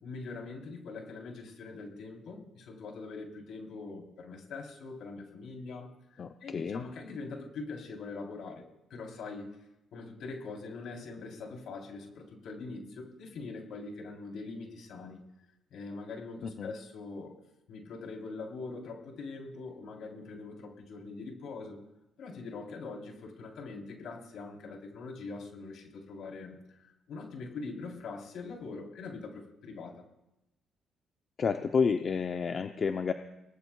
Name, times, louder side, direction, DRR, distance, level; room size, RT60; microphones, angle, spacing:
voice 1, 0.0-8.6 8.9-9.5 9.9-15.2 15.7-17.4 17.7-21.8 22.2-30.0, left 3 dB, 75° left, 1 dB, 3.6 m, -43 dB
voice 2, 6.2-6.8 16.4-16.7 31.4-33.1, left 5 dB, 50° left, 6 dB, 0.7 m, -30 dB
25.5 x 19.0 x 2.4 m, 0.90 s
cardioid pair, 90°, 0 cm